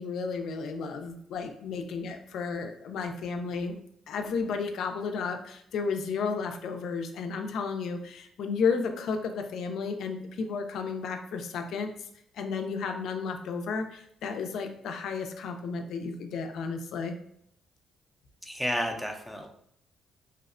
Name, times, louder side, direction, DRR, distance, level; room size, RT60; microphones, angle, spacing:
voice 1, 0.0-3.8 4.1-11.9 12.3-17.1, left 5 dB, 75° left, 6 dB, 0.3 m, -33 dB
voice 2, 18.4-19.5, equal, ahead, 3 dB, 0.4 m, -31 dB
2.7 x 2.0 x 2.4 m, 0.70 s
cardioid pair, 90°, 0 cm